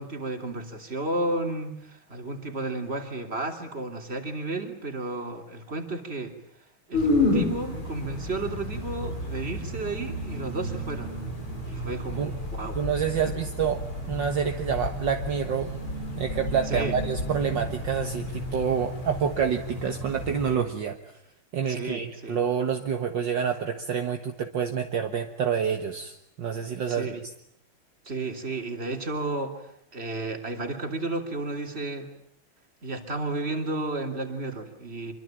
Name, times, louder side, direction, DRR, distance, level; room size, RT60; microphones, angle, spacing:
voice 1, 0.0-6.3 6.9-11.1 11.6-12.8 16.7-17.0 21.7-22.4 26.9-27.2 28.0-29.6 29.9-32.1 32.8-35.1, right 2 dB, 25° right, 5 dB, 3.4 m, -32 dB
sound 1, 6.9-20.5, left 1 dB, 80° left, 8.0 m, -31 dB
voice 2, 12.7-15.7 16.2-21.2 21.5-27.1, right 7 dB, 60° right, 5 dB, 2.0 m, -28 dB
26.0 x 24.0 x 9.1 m, 0.71 s
omnidirectional pair, 2.4 m